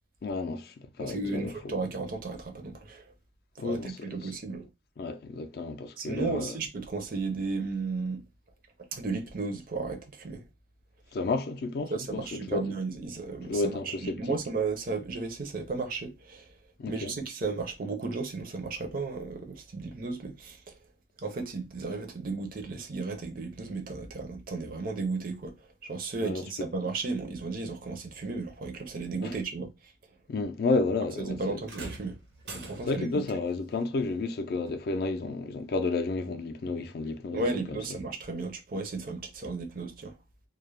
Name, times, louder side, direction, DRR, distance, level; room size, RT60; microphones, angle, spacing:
voice 1, 0.2-1.8 3.6-4.3 5.0-6.6 11.1-12.6 13.5-14.4 16.8-17.1 26.2-26.7 29.2-29.3 30.3-31.4 32.9-37.8, left 3 dB, 55° left, 0.3 m, -31 dB
voice 2, 1.0-3.1 3.6-4.7 6.0-8.2 8.9-10.4 11.9-16.5 16.9-20.8 21.2-29.9 31.2-32.2 32.5-33.2 37.3-40.2, right 3 dB, 50° right, 0.5 m, -34 dB
sound 1, 31.6-33.2 34.7-34.8 35.7-35.8, right 2 dB, 75° right, 0.9 m, -44 dB
2.3 x 2.0 x 3.1 m
head